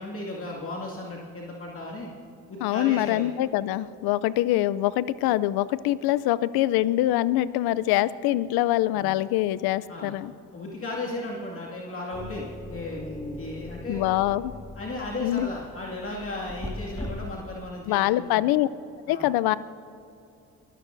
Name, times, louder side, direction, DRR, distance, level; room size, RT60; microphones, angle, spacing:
voice 1, 0.0-2.1 2.5-3.3 8.9-9.1 9.9-10.1 10.5-14.0 14.7-18.4 19.1-19.3, left 2 dB, 35° left, -3 dB, 2.2 m, -35 dB
voice 2, 2.6-10.3 13.9-14.5 15.2-15.5 17.9-18.7 19.1-19.6, left 15 dB, 80° left, 18 dB, 0.6 m, -24 dB
sound 1, 12.1-17.7, left 1 dB, 10° left, 1.8 m, -40 dB
23.0 x 15.5 x 2.7 m, 2.6 s
supercardioid pair, 70°, 37 cm